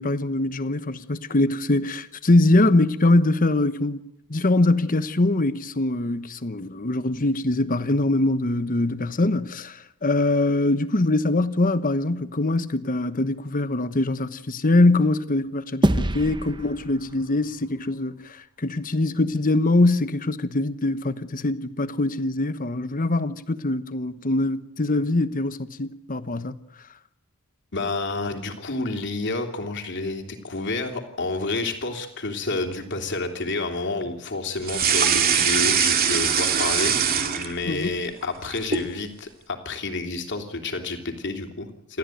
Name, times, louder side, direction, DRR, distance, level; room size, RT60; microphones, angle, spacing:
voice 1, 0.0-4.0 4.3-26.5 37.7-37.9, left 2 dB, 40° left, 1.1 m, -23 dB
sound 1, 15.8-18.4, right 1 dB, 20° right, 0.9 m, -27 dB
voice 2, 27.7-37.0 37.3-42.0, left 3 dB, 55° left, 3.2 m, -29 dB
sound 2, 34.6-37.9 38.2-38.9, right 7 dB, 45° right, 2.4 m, -22 dB
28.5 x 13.5 x 9.2 m
head